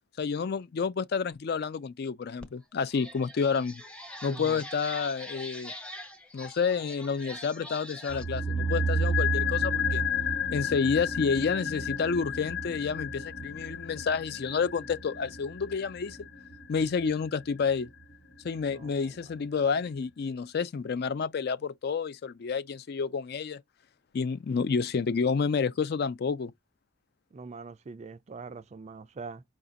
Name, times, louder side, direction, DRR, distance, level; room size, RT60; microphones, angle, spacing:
voice 1, 0.2-3.8 4.2-5.7 6.3-10.0 10.5-16.2 16.7-17.9 18.4-23.6 24.1-26.5, left 5 dB, 50° left, 0.4 m, -29 dB
sound 1, 2.4-2.5 2.9-8.2, left 1 dB, 5° left, 0.6 m, -43 dB
voice 2, 4.2-4.6 18.7-19.0 27.3-29.4, right 4 dB, 35° right, 0.3 m, -43 dB
sound 2, 8.1-18.3 18.6-18.7, left 2 dB, 80° left, 1.4 m, -31 dB
4.9 x 2.5 x 3.9 m
head